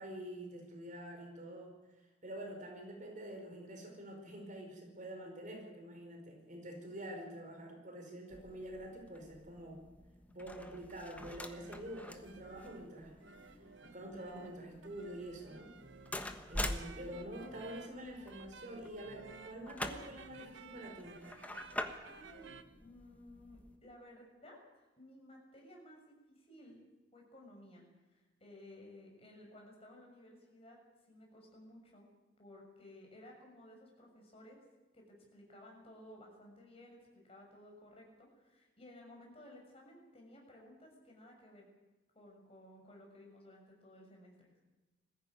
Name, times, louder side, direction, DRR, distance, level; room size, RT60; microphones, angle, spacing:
voice 1, 0.0-1.7 2.2-9.8 10.3-13.1 13.8-15.7 16.5-21.2, right 1 dB, 40° right, 2 dB, 5.0 m, -47 dB
sound 1, 8.3-23.8, left 1 dB, 10° left, 1.3 m, -46 dB
sound 2, 11.2-22.6, right 5 dB, 75° right, 1.4 m, -56 dB
voice 2, 16.9-17.3 22.0-22.5 22.8-26.8 27.1-30.8 31.1-32.1 32.4-34.6 34.9-41.7 42.1-44.6, left 1 dB, 30° left, 0 dB, 6.6 m, -57 dB
21.0 x 15.0 x 9.6 m, 1.1 s
head